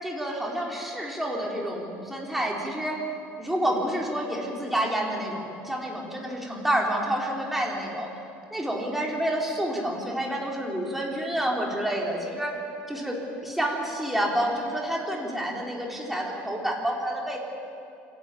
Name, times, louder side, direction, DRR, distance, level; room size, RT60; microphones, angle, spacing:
voice 1, 0.0-3.0 3.4-8.1 8.5-12.5 12.9-13.2 13.4-17.4, right 1 dB, 5° right, -2 dB, 4.0 m, -29 dB
27.5 x 12.0 x 9.2 m, 2.7 s
cardioid pair, 115°, 5 cm